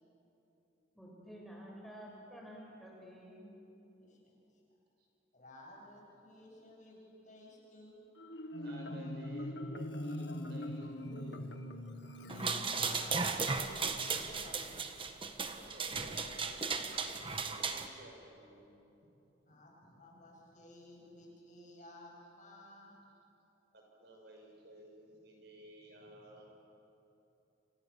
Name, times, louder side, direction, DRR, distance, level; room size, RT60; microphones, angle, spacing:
voice 1, 0.9-3.6, equal, ahead, -3 dB, 6.8 m, -51 dB
voice 2, 4.0-4.6 5.3-7.9 12.2-14.8 19.5-23.0, left 1 dB, 40° left, -2 dB, 7.6 m, -55 dB
Marimba xylophone, 8.2-13.3, left 1 dB, 65° left, 1.7 m, -42 dB
voice 3, 8.5-11.5 15.5-18.8 19.5-19.6 19.8-19.9 23.7-26.6, right 1 dB, 60° right, 0 dB, 6.6 m, -55 dB
sound 1, 12.3-17.9, right 5 dB, 30° right, 1.4 m, -36 dB
29.5 x 28.0 x 7.2 m, 2.9 s
head